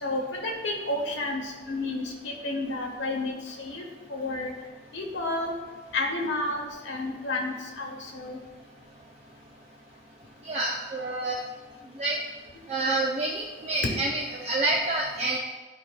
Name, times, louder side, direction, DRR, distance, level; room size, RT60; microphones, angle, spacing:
voice 1, 0.0-3.8 4.1-4.5 4.9-5.6 5.9-8.4 13.8-14.0, left 2 dB, 85° left, 2 dB, 1.2 m, -31 dB
voice 2, 10.4-11.4 12.0-12.2 12.7-15.4, right 2 dB, 35° right, -2 dB, 0.5 m, -28 dB
11.0 x 4.6 x 2.3 m, 1.3 s
head